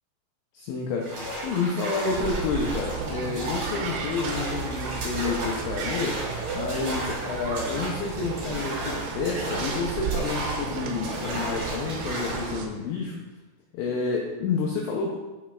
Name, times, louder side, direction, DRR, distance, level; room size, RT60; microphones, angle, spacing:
voice 1, 0.5-6.2 6.5-13.2 13.7-15.2, left 4 dB, 85° left, -1 dB, 2.6 m, -29 dB
sound 1, 1.0-12.6, right 1 dB, 70° right, 1.2 m, -34 dB
sound 2, 2.1-12.7, right 6 dB, 85° right, 3.0 m, -33 dB
8.5 x 5.8 x 2.3 m, 1.2 s
omnidirectional pair, 6.0 m